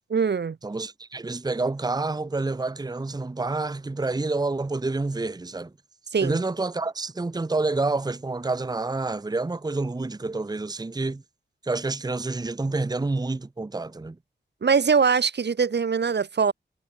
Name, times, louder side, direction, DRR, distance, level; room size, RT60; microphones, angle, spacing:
voice 1, 0.1-0.6 6.1-6.4 14.6-16.5, right 6 dB, 65° right, 1.3 m, -22 dB
voice 2, 0.6-5.7 6.2-11.2 11.6-14.2, right 3 dB, 20° right, 0.9 m, -28 dB
wide cardioid pair, 115°, 19 cm